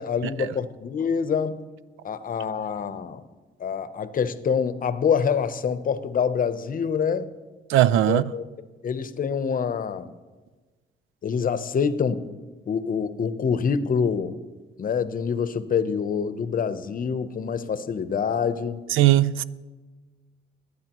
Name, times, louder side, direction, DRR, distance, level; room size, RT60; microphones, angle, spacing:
voice 1, 0.0-1.6 2.0-3.2 3.6-7.3 8.0-8.5 8.8-10.1 11.2-12.2 12.7-14.3 14.8-18.8, left 6 dB, 45° left, 0.8 m, -26 dB
voice 2, 7.7-8.2 18.9-19.4, right 13 dB, 85° right, 0.4 m, -19 dB
21.5 x 9.4 x 3.0 m
cardioid pair, 90°, 20 cm